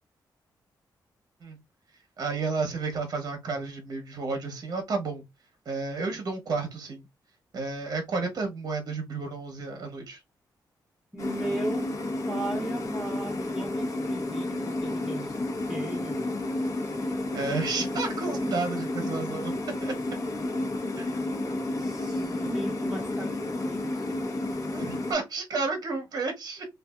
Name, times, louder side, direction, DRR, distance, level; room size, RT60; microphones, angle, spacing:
voice 1, 2.2-5.2 5.6-7.1 7.5-10.2 17.3-19.5 19.8-19.9 21.0-21.2 24.7-26.7, right 4 dB, 55° right, 0.9 m, -31 dB
voice 2, 11.1-11.9 12.3-15.4 15.7-16.4 21.7-24.1, right 1 dB, ahead, 0.8 m, -37 dB
sound 1, 11.2-25.1, left 2 dB, 45° left, 0.8 m, -31 dB
2.7 x 2.4 x 2.3 m
cardioid pair, 110°, 8 cm